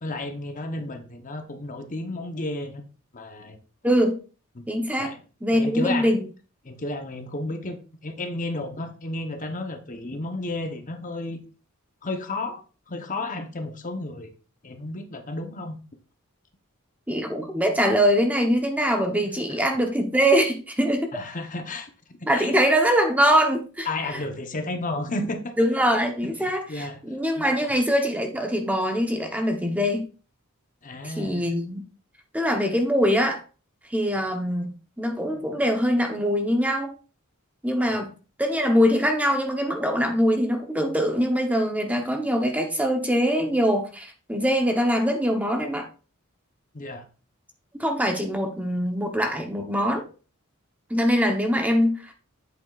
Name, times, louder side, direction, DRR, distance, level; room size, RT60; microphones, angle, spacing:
voice 1, 0.0-2.8 3.1-3.6 4.6-4.7 5.0-5.2 5.5-6.1 6.7-11.4 12.0-14.3 14.6-15.8 21.1-21.9 22.3-22.5 23.9-25.5 26.2-27.0 27.4-27.7 30.8-31.5 37.9-38.0 46.7-47.0, left 2 dB, 40° left, 6 dB, 1.0 m, -32 dB
voice 2, 3.8-4.2 4.7-5.1 5.4-6.2 17.1-21.1 22.3-23.9 25.6-30.1 31.0-31.8 32.3-33.4 33.9-36.9 37.6-38.1 38.4-45.9 47.7-50.0 50.9-52.1, equal, 5° right, 4 dB, 0.9 m, -23 dB
8.1 x 7.8 x 2.5 m, 0.36 s
head